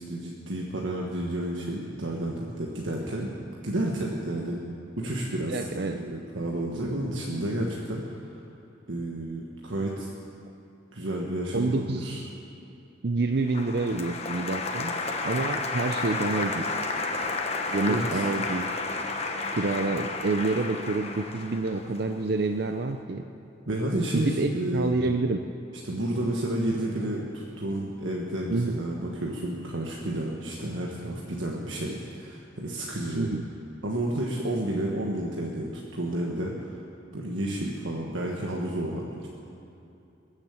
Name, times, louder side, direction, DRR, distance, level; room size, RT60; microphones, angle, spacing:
voice 1, 0.0-3.3 3.6-4.6 5.0-5.7 5.9-8.4 8.9-10.1 10.9-12.2 17.9-18.2 23.7-24.9 25.8-33.3 33.8-36.8 37.1-39.3, right 1 dB, 90° right, -2 dB, 1.5 m, -31 dB
voice 2, 5.5-6.0 11.5-12.3 13.0-14.9 15.2-16.7 17.7-18.7 19.5-23.2 24.1-25.4 28.5-28.8 33.1-33.4, right 3 dB, 55° right, 6 dB, 0.6 m, -28 dB
Applause, 13.5-22.6, left 3 dB, 35° left, 1.0 m, -32 dB
21.0 x 7.4 x 8.3 m, 2.7 s
head